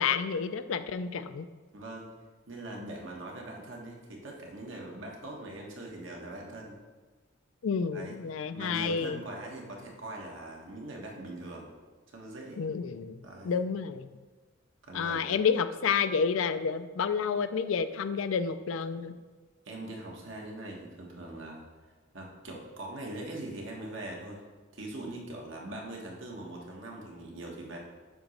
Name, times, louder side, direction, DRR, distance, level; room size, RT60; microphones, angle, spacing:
voice 1, 0.0-1.5 7.6-9.2 12.6-14.1 14.9-19.2, left 6 dB, 80° left, 12 dB, 0.4 m, -30 dB
voice 2, 1.7-2.1 2.5-6.8 7.9-8.2 8.5-11.7 12.1-12.6 13.2-13.6 14.8-15.3 19.6-21.6 22.1-24.4 24.7-27.8, right 1 dB, 70° right, -1 dB, 1.4 m, -42 dB
9.0 x 3.0 x 6.4 m, 1.3 s
head